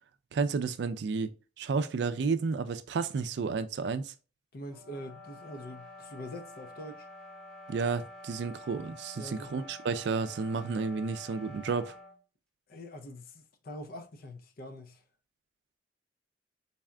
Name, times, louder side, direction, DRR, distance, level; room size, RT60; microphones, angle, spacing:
voice 1, 0.3-4.1 7.7-12.0, right 4 dB, 70° right, 0.4 m, -31 dB
voice 2, 4.5-7.1 9.2-9.6 12.7-15.0, left 1 dB, 55° left, 0.5 m, -44 dB
sound 1, 4.7-12.2, left 1 dB, 5° left, 1.1 m, -49 dB
4.0 x 3.6 x 2.2 m
head